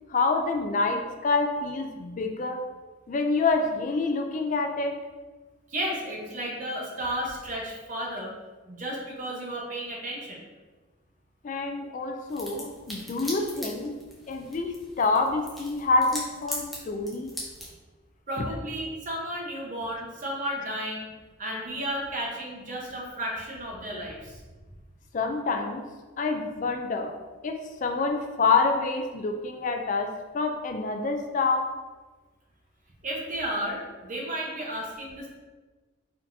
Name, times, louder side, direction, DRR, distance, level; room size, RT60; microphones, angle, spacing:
voice 1, 0.1-2.6 3.1-4.9 11.4-13.9 14.3-17.3 25.1-25.8 26.2-27.2 27.4-30.1 30.3-31.7, left 3 dB, 40° left, 4 dB, 0.3 m, -27 dB
voice 2, 5.7-8.3 8.7-10.4 18.3-21.1 21.4-24.4 33.0-35.3, equal, 40° right, -2 dB, 0.9 m, -33 dB
sound 1, 12.3-17.8, equal, ahead, 0.8 m, -40 dB
4.2 x 4.0 x 2.6 m, 1.3 s
head